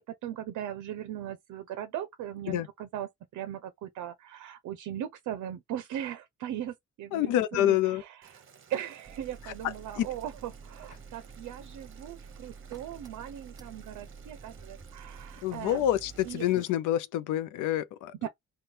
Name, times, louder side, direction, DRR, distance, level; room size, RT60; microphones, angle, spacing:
voice 1, 0.0-8.4 8.7-15.8 16.2-16.5 18.2-18.3, right 11 dB, 75° right, 0.5 m, -39 dB
voice 2, 7.1-8.0 9.4-10.1 15.4-18.3, left 12 dB, 85° left, 0.5 m, -28 dB
Boiling, 8.2-16.7, right 7 dB, 45° right, 0.8 m, -57 dB
sound 1, 9.0-16.5, right 5 dB, 15° right, 0.3 m, -49 dB
3.2 x 2.2 x 4.3 m
cardioid pair, 90°, 30 cm